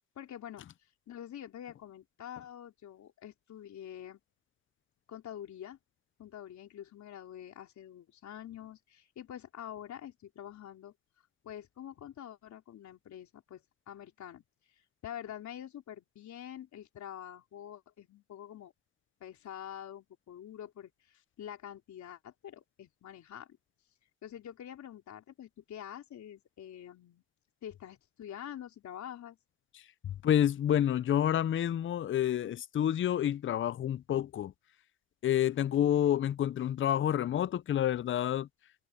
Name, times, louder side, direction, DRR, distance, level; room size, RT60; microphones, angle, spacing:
voice 1, 0.2-0.7 1.1-4.2 5.1-5.8 6.2-10.9 11.4-14.4 14.7-18.7 19.2-23.5 24.2-27.2 27.6-29.4 35.6-36.0, left 10 dB, 70° left, 4.2 m, -46 dB
voice 2, 30.0-34.5 35.2-38.5, left 10 dB, 40° left, 0.5 m, -29 dB
cardioid pair, 90°, 30 cm